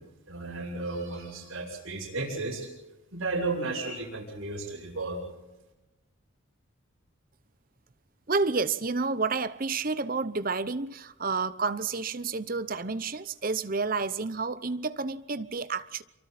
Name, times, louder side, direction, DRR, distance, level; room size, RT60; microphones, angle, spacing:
voice 1, 0.3-2.7 3.1-5.3, right 3 dB, 80° right, 6.7 m, -33 dB
voice 2, 8.3-16.0, right 4 dB, 45° right, 0.8 m, -30 dB
28.0 x 24.0 x 4.3 m
head